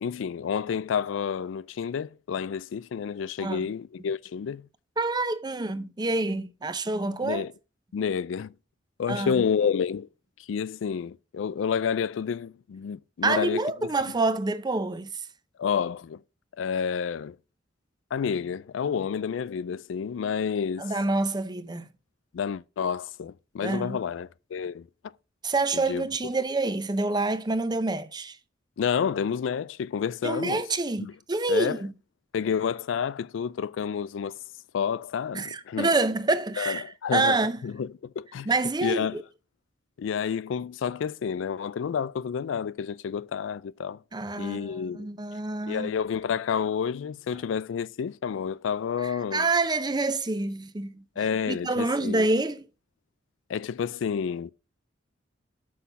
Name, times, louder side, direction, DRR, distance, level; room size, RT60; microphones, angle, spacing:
voice 1, 0.0-4.7 7.2-7.5 7.9-8.5 9.0-10.1 10.5-13.7 15.6-16.2 16.6-17.4 18.1-20.9 22.3-24.9 25.7-26.1 28.8-30.6 31.0-31.1 31.5-31.8 32.3-34.4 34.7-35.9 36.6-38.5 38.8-39.2 40.0-44.0 44.4-45.1 45.7-49.5 51.2-52.3 53.5-54.5, left 7 dB, 80° left, 0.3 m, -29 dB
voice 2, 3.4-3.7 5.0-7.4 9.1-9.4 13.2-15.3 20.8-21.9 23.6-24.0 25.4-28.4 30.2-31.9 35.3-36.8 37.1-37.6 38.4-39.2 44.1-45.9 49.0-51.0 51.5-52.6, right 2 dB, 20° right, 0.6 m, -27 dB
6.3 x 5.5 x 5.5 m
head